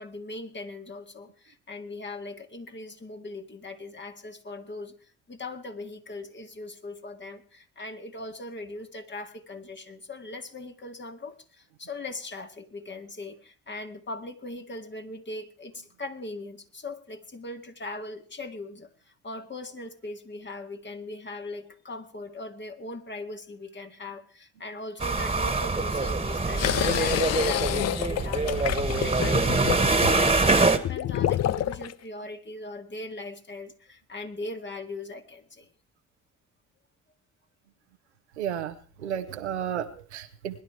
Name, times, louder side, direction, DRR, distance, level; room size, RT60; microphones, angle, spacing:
voice 1, 0.0-4.9 5.3-18.9 19.2-35.7, left 2 dB, 35° left, 6 dB, 2.0 m, -39 dB
sound 1, 25.0-30.8, right 3 dB, 20° right, 1.7 m, -24 dB
sound 2, 26.6-31.9, left 12 dB, 50° left, 0.6 m, -29 dB
voice 2, 38.4-40.6, right 9 dB, 90° right, 9 dB, 0.9 m, -33 dB
21.0 x 11.0 x 4.7 m, 0.41 s
hypercardioid pair, 40°, 33 cm